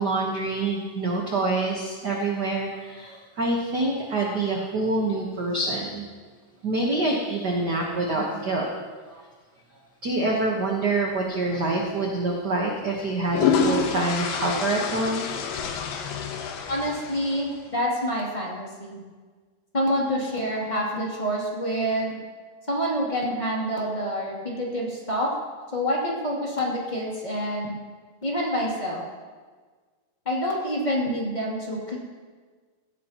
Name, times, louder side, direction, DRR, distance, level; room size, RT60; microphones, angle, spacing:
voice 1, 0.0-6.0 6.6-8.7 9.1-9.2 10.0-15.2, right 2 dB, 55° right, -1 dB, 1.1 m, -26 dB
sound 1, 11.6-11.8 13.0-17.6, left 6 dB, 90° left, 2.8 m, -28 dB
voice 2, 16.6-19.0 19.7-22.2 22.7-25.3 25.7-27.8 28.2-29.0 30.2-32.0, equal, 15° left, -5 dB, 2.6 m, -27 dB
16.5 x 15.5 x 3.0 m, 1.5 s
omnidirectional pair, 3.9 m